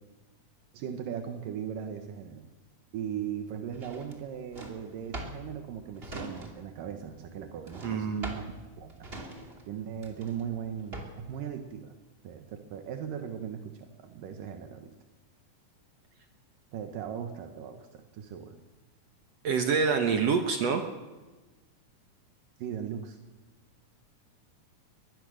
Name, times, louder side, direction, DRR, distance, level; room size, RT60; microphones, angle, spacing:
voice 1, 0.7-2.4 2.9-9.0 9.7-11.9 12.2-15.0 16.7-18.6 22.6-23.2, right 8 dB, 80° right, 6 dB, 2.9 m, -38 dB
Drawer open or close, 3.7-6.8 7.1-11.4, right 2 dB, 20° right, 2.4 m, -43 dB
voice 2, 7.8-8.4 19.4-20.8, right 5 dB, 60° right, 5 dB, 2.1 m, -26 dB
21.5 x 21.0 x 6.4 m, 1.2 s
omnidirectional pair, 3.8 m